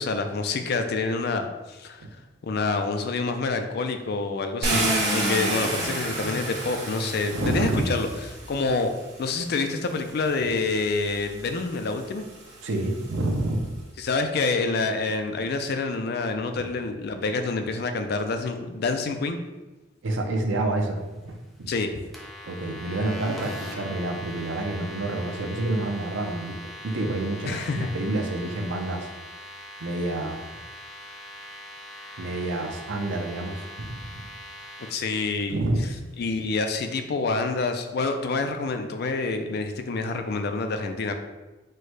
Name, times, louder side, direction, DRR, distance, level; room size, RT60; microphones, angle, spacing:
voice 1, 0.0-2.1 2.4-8.1 8.5-8.9 9.2-12.3 14.0-19.4 21.7-21.9 27.4-27.9 34.8-35.6 36.2-41.1, left 3 dB, 55° left, 6 dB, 0.4 m, -27 dB
Car, 4.6-8.7 9.7-9.8 10.3-13.6, right 1 dB, 60° right, 1.2 m, -30 dB
voice 2, 7.3-7.8 12.6-13.7 20.0-21.7 22.5-26.6 26.8-29.1 29.8-30.4 32.2-34.2 35.5-35.8, right 2 dB, 90° right, 3 dB, 0.6 m, -28 dB
sound 1, 22.1-34.9, equal, ahead, 0.6 m, -41 dB
4.5 x 2.1 x 4.6 m, 1.1 s
head